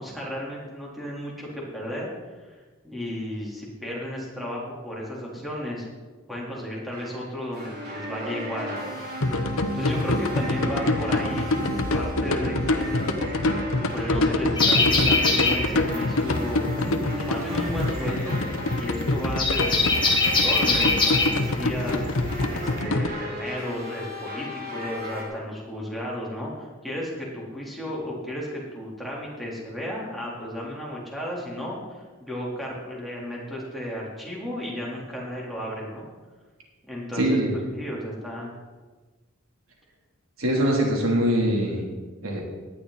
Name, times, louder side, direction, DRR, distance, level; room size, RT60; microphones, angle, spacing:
voice 1, 0.0-2.6 2.8-5.9 6.3-9.0 9.7-11.6 11.9-13.0 13.9-18.5 18.8-19.9 20.2-36.1 36.9-38.5, equal, ahead, -5 dB, 3.8 m, -34 dB
sound 1, 6.9-25.2, equal, 50° right, 4.6 m, -36 dB
sound 2, 9.2-23.1, left 2 dB, 80° left, 1.0 m, -26 dB
sound 3, 14.6-22.8, left 3 dB, 25° left, 3.1 m, -24 dB
voice 2, 37.2-37.5 40.4-41.8 42.2-42.4, right 1 dB, 80° right, -1 dB, 3.4 m, -22 dB
18.0 x 11.5 x 4.2 m, 1.3 s
head